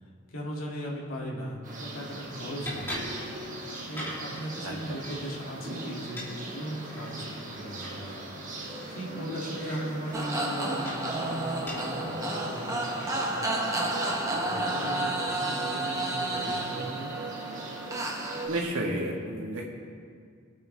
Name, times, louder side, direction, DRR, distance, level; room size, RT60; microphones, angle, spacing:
voice 1, 0.3-3.1 3.5-8.2 8.9-17.1, equal, 85° left, -4 dB, 2.5 m, -38 dB
sound 1, 1.5-13.5, equal, 10° left, 2.9 m, -44 dB
sound 2, 1.6-18.6, right 1 dB, 40° right, 2.1 m, -39 dB
voice 2, 4.6-5.0 18.5-19.6, right 1 dB, 80° right, -2 dB, 2.4 m, -32 dB
sound 3, 10.1-18.5, right 2 dB, 15° right, 1.1 m, -31 dB
23.5 x 8.8 x 3.4 m, 2.2 s
head